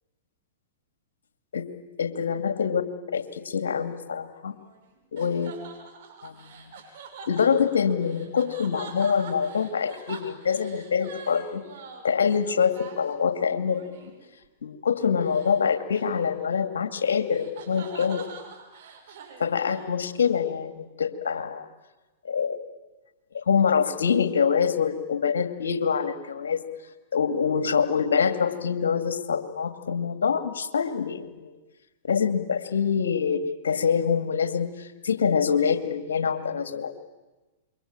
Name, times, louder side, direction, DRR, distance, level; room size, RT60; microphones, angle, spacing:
voice 1, 2.0-2.8 3.1-4.6 5.1-5.5 6.2-6.7 7.3-11.6 12.0-13.8 14.6-18.2 19.4-21.6 22.2-22.6 23.3-26.6 27.1-31.6 32.0-37.0, left 6 dB, 75° left, 9 dB, 2.3 m, -25 dB
sound 1, 4.4-14.3 15.2-15.6 15.9-20.5, right 5 dB, 60° right, 6.6 m, -45 dB
28.0 x 23.5 x 8.9 m, 1.2 s
hypercardioid pair, 110°, 0 cm